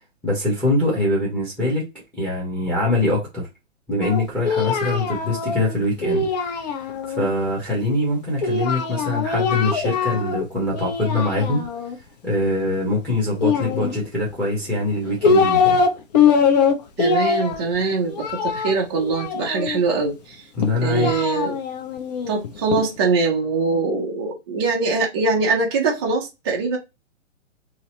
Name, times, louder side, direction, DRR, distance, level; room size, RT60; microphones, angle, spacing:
voice 1, 0.2-1.9 2.1-3.5 3.9-6.6 7.1-11.6 12.2-15.8 20.6-21.1, left 2 dB, 5° left, 0.8 m, -23 dB
Singing, 4.0-7.3 8.4-10.4 10.7-12.0 13.4-14.3 14.9-19.8 20.6-22.8, left 5 dB, 35° left, 0.5 m, -22 dB
voice 2, 17.0-20.4 20.8-21.6 22.3-26.8, right 4 dB, 20° right, 0.4 m, -22 dB
2.8 x 2.0 x 2.9 m
hypercardioid pair, 130°, 39 cm